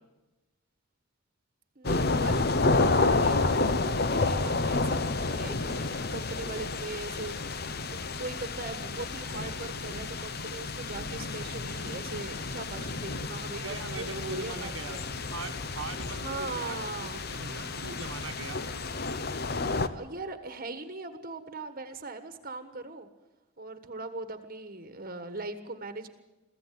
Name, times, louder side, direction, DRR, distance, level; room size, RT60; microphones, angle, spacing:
voice 1, 1.7-7.6 7.9-15.0 16.1-17.2 19.8-23.1 23.6-26.1, right 3 dB, 45° right, 9 dB, 1.4 m, -40 dB
sound 1, 1.8-19.9, left 3 dB, 50° left, 1.0 m, -30 dB
voice 2, 13.6-15.0 15.3-18.6, right 3 dB, 75° right, 5 dB, 1.4 m, -40 dB
22.5 x 15.0 x 9.4 m, 1.1 s
head